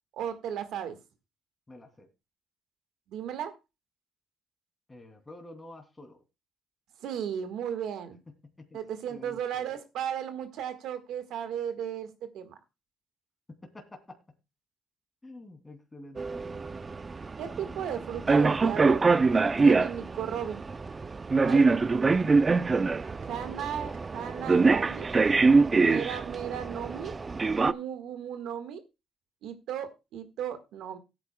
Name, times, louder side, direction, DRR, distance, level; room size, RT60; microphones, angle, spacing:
voice 1, 0.2-1.0 3.1-3.5 7.0-8.2 8.7-12.1 12.3-12.5 17.4-19.0 19.6-20.6 21.4-21.7 23.2-25.1 25.8-27.1 27.6-28.8 29.4-31.0, right 9 dB, 85° right, 9 dB, 1.5 m, -35 dB
voice 2, 1.7-2.1 4.9-6.2 8.3-8.8 9.1-9.8 13.5-14.2 15.2-16.5, left 2 dB, 20° left, 4 dB, 2.6 m, -48 dB
sound 1, 16.2-27.7, right 4 dB, 30° right, 0.4 m, -24 dB
17.5 x 8.9 x 2.2 m, 0.24 s
cardioid pair, 90°, 0 cm